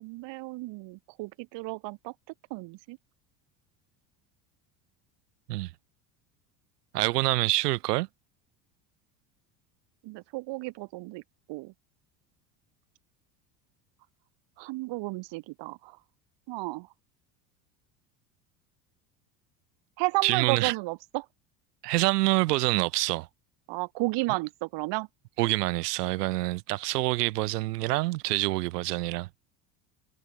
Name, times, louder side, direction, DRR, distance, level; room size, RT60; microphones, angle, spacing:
voice 1, 0.0-2.1 2.5-3.0 10.0-11.2 11.5-11.7 14.6-16.0 16.5-16.9 20.0-21.3 23.7-25.1, right 22 dB, 65° right, 7.5 m, -32 dB
voice 2, 6.9-8.1 20.2-20.7 21.8-23.3 25.4-29.3, right 20 dB, 80° right, 3.7 m, -26 dB
supercardioid pair, 90°, 47 cm